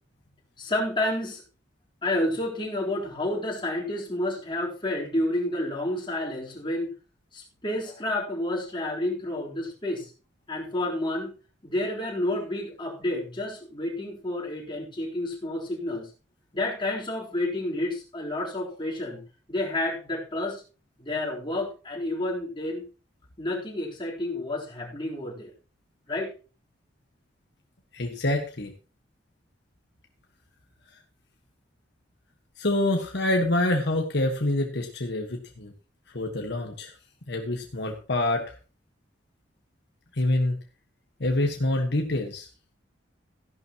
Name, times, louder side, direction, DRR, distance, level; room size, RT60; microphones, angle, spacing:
voice 1, 0.6-1.4 2.0-6.9 7.3-10.1 10.5-11.3 11.6-16.1 16.5-19.2 19.5-20.6 21.0-22.8 23.4-25.5 26.1-26.3, left 1 dB, 25° left, -4 dB, 3.9 m, -30 dB
voice 2, 27.9-28.7 32.6-35.7 36.1-36.9 37.3-38.5 40.1-40.6 41.2-42.5, left 1 dB, 65° left, 3 dB, 1.5 m, -26 dB
15.0 x 11.5 x 3.0 m, 0.35 s
head